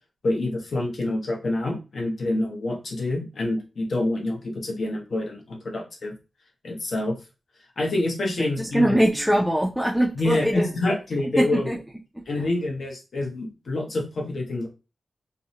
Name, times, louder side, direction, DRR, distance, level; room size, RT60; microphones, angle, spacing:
voice 1, 0.2-6.1 6.6-7.1 7.8-9.0 10.2-11.7 12.3-14.7, left 2 dB, 60° left, 1 dB, 0.7 m, -27 dB
voice 2, 8.4-10.7 11.4-11.8 12.2-12.5, equal, ahead, -1 dB, 0.3 m, -23 dB
2.5 x 2.0 x 2.7 m, 0.30 s
wide cardioid pair, 140°, 0 cm